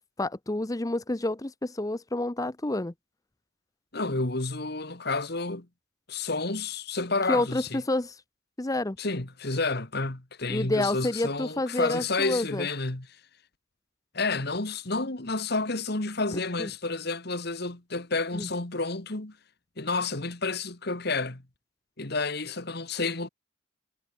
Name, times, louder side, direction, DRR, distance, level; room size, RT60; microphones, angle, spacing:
voice 1, 0.2-2.9 7.3-8.2 8.6-9.0 10.5-12.7 16.6-16.7 18.3-18.5, left 2 dB, 15° left, 0.7 m, -29 dB
voice 2, 3.9-5.7 6.1-7.8 9.0-13.1 14.1-19.4 19.8-21.4 22.0-23.3, left 3 dB, 50° left, 2.0 m, -30 dB
head